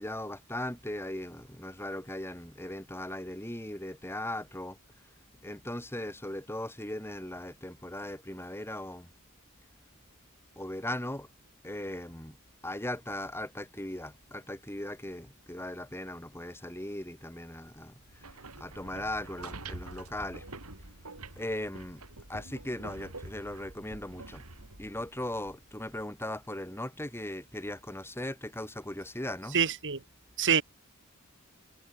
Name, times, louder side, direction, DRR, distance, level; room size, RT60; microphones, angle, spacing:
voice 1, 0.0-4.8 5.4-9.1 10.6-11.3 11.6-12.4 12.6-18.2 18.6-20.4 21.4-22.0 22.3-24.4 24.8-29.6, left 1 dB, 10° left, 8.0 m, -38 dB
sound 1, 18.0-26.0, right 2 dB, 85° right, 4.0 m, -46 dB
voice 2, 29.5-30.0 30.4-30.6, right 7 dB, 60° right, 2.4 m, -25 dB
head